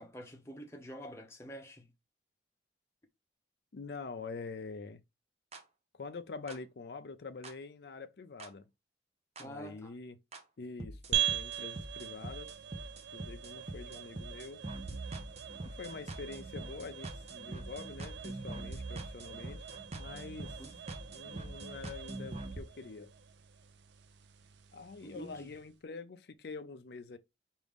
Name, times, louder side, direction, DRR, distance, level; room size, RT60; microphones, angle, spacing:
voice 1, 0.0-1.9 9.4-9.9 20.6-20.8 25.0-25.5, equal, 15° left, 0.8 m, -47 dB
voice 2, 3.7-5.0 5.9-8.6 9.4-10.2 10.6-12.6 13.1-14.6 14.9-15.0 15.8-19.7 19.9-20.6 21.1-23.1 24.7-27.2, left 4 dB, 65° left, 0.5 m, -45 dB
sound 1, 5.5-5.6 6.5-6.6 7.4-7.5 8.4-8.5 9.4-9.5 10.3-10.4 10.8-22.6, right 2 dB, 35° right, 0.6 m, -44 dB
sound 2, 11.1-25.7, right 10 dB, 75° right, 0.4 m, -42 dB
4.9 x 2.6 x 3.5 m
head